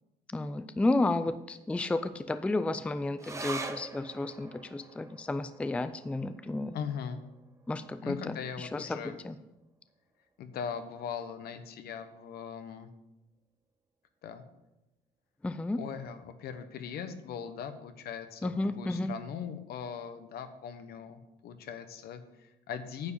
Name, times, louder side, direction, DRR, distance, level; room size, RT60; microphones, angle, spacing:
voice 1, 0.3-6.8 7.7-9.4 15.4-15.8 18.4-19.1, left 2 dB, 5° left, 12 dB, 0.4 m, -32 dB
sound 1, 3.2-10.0 10.3-10.4 10.7-11.4 12.0-12.1, right 3 dB, 15° right, 0.8 m, -46 dB
voice 2, 6.7-7.2 8.0-9.1 10.4-12.9 14.2-14.4 15.8-23.1, left 7 dB, 70° left, 9 dB, 1.1 m, -40 dB
9.5 x 4.8 x 7.1 m, 0.94 s
cardioid pair, 110°, 17 cm